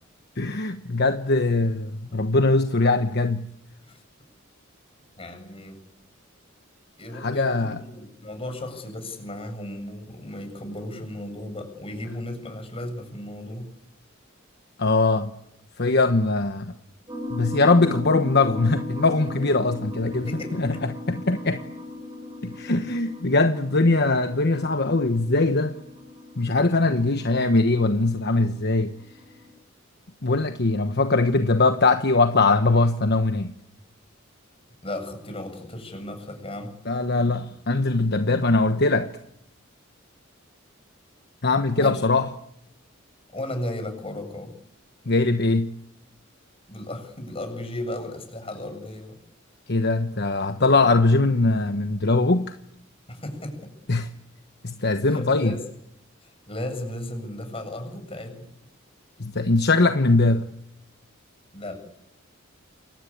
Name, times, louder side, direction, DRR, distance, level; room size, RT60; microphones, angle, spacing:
voice 1, 0.4-3.5 7.1-7.8 14.8-15.3 15.8-16.8 17.3-21.6 22.4-25.8 26.4-28.9 30.2-33.5 36.8-39.1 41.4-42.3 45.1-45.7 49.7-52.5 53.9-54.1 54.6-55.6 59.2-60.5, left 3 dB, 55° left, 1.2 m, -21 dB
voice 2, 5.2-5.8 7.0-13.7 20.3-20.6 34.8-36.7 41.8-42.1 43.3-44.5 46.7-49.2 53.1-53.7 55.0-55.6 56.2-58.5 61.5-61.8, left 1 dB, 30° left, 7.4 m, -35 dB
sound 1, 17.1-29.5, left 2 dB, 20° right, 7.3 m, -38 dB
28.5 x 23.5 x 8.7 m
head